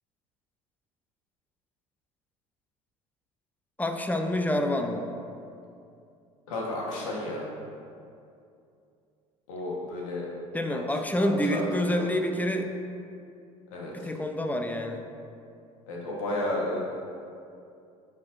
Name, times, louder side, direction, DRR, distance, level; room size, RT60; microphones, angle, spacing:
voice 1, 3.8-5.0 10.5-12.7 13.9-15.0, left 1 dB, 10° left, 5 dB, 0.6 m, -27 dB
voice 2, 6.5-7.5 9.5-10.3 10.7-10.8 11.2-11.6 11.9-12.0 13.7-14.1 15.9-16.8, left 1 dB, 80° left, -3 dB, 1.4 m, -32 dB
10.5 x 4.2 x 2.6 m, 2.5 s
hypercardioid pair, 70°, 17 cm